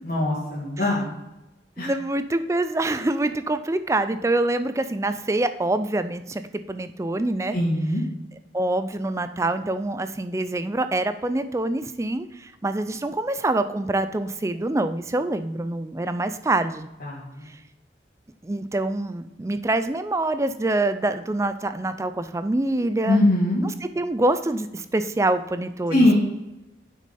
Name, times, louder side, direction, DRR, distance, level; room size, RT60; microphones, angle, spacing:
voice 1, 0.0-1.1 1.8-1.9 7.5-8.0 17.0-17.4 23.1-23.7 25.9-26.1, left 1 dB, 50° left, -9 dB, 2.2 m, -21 dB
voice 2, 1.8-6.4 6.7-7.6 8.5-16.9 18.4-23.2 23.6-26.1, right 2 dB, 15° right, 11 dB, 0.4 m, -25 dB
8.7 x 6.2 x 4.2 m, 0.97 s
head